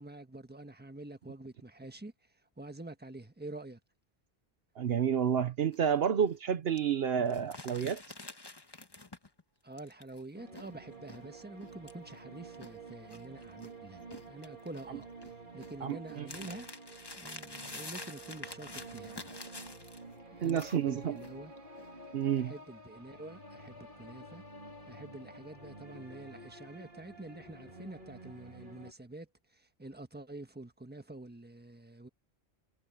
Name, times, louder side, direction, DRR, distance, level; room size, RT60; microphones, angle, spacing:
voice 1, 0.0-2.1 2.6-3.8 9.6-15.1 15.5-16.7 17.1-19.3 20.4-21.5 22.4-24.4 24.9-32.1, right 2 dB, 10° right, 1.4 m, -47 dB
voice 2, 4.8-8.0 15.8-16.3 20.4-21.2 22.1-22.5, right 8 dB, 65° right, 1.0 m, -30 dB
sound 1, 5.7-6.0 6.2-6.3 6.8-6.9 7.3-9.4 9.8-13.7 14.0-20.2 20.4-21.3 21.6-21.9 22.3-22.6, left 2 dB, 25° left, 1.2 m, -47 dB
sound 2, 10.3-28.9, right 2 dB, 50° right, 3.1 m, -50 dB
omnidirectional pair, 1.1 m